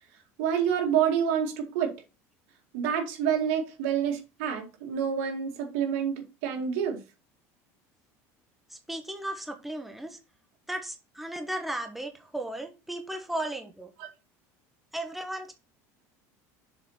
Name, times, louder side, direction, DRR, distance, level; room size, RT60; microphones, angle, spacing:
voice 1, 0.4-1.9 2.7-7.0 14.0-14.1, right 8 dB, 80° right, 4 dB, 2.3 m, -28 dB
voice 2, 8.7-10.2 10.7-13.9 14.9-15.5, right 1 dB, ahead, 5 dB, 1.2 m, -35 dB
7.0 x 4.1 x 5.8 m, 0.29 s
cardioid pair, 140°, 7 cm